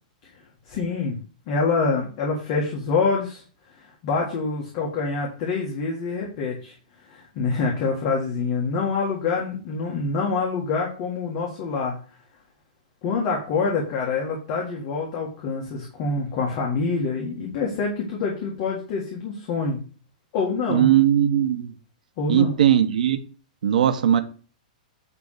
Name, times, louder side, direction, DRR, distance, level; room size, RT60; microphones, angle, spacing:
voice 1, 0.7-1.2 1.5-3.4 3.7-6.7 7.1-12.0 13.0-19.8 20.3-20.9 22.2-22.6, left 4 dB, 30° left, 1.8 m, -26 dB
voice 2, 20.7-21.7 22.3-23.2 23.6-24.2, right 10 dB, 70° right, 1.1 m, -19 dB
9.6 x 3.5 x 6.6 m
hypercardioid pair, 175°, 4 cm